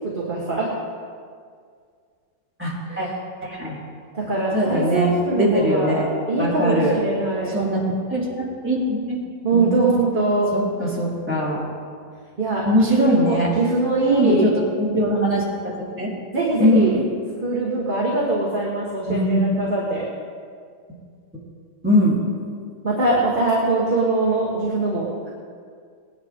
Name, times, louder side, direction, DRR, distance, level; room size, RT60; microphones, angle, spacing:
voice 1, 0.1-0.7 2.9-3.1 4.1-7.5 9.4-10.5 12.4-14.5 16.3-17.0 17.4-20.1 22.8-25.3, right 2 dB, 25° right, -5 dB, 1.8 m, -22 dB
voice 2, 2.6-3.1 3.4-3.8 4.5-6.1 6.4-7.0 7.5-9.2 9.5-9.8 10.5-11.6 12.7-13.5 14.1-14.5 14.8-15.4 16.0-16.1 16.6-17.0 19.1-19.4 21.8-22.2, equal, 5° right, -8 dB, 3.8 m, -21 dB
19.5 x 10.5 x 3.8 m, 2.1 s
omnidirectional pair, 2.1 m